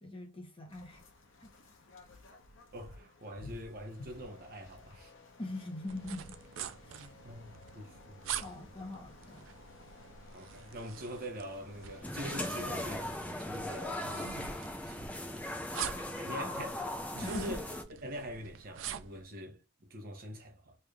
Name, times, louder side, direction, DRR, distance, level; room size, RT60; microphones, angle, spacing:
voice 1, 0.0-1.0 1.4-1.7 5.4-6.4 6.8-7.1 8.4-9.5 16.3-16.6 17.2-17.6, left 2 dB, 30° left, 0.9 m, -42 dB
sound 1, 0.7-12.2, left 3 dB, 80° left, 0.8 m, -54 dB
voice 2, 2.7-5.1 6.9-8.3 10.3-15.0 16.2-16.8 17.1-17.7 18.0-20.8, equal, 50° right, 0.9 m, -44 dB
sound 2, 5.9-19.2, right 9 dB, 80° right, 0.4 m, -45 dB
sound 3, 12.0-17.8, left 1 dB, 10° left, 0.5 m, -38 dB
3.3 x 2.5 x 3.3 m
head